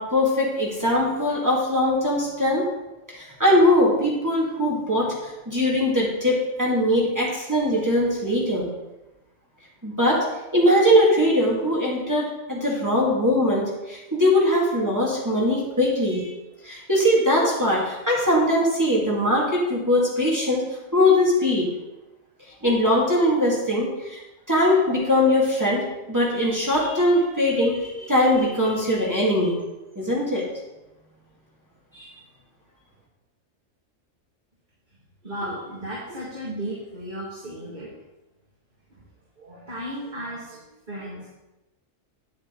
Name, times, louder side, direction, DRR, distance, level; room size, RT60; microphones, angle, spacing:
voice 1, 0.0-2.6 3.1-8.7 9.8-10.2 10.5-16.3 16.6-20.6 20.9-21.7 22.6-24.2 24.5-29.6 30.0-30.4 32.0-32.1, left 1 dB, 15° right, -5 dB, 2.1 m, -21 dB
voice 2, 35.2-37.9 38.9-39.0 39.4-41.3, right 1 dB, 35° right, -6 dB, 1.9 m, -35 dB
9.6 x 7.9 x 3.8 m, 1.0 s
omnidirectional pair, 1.4 m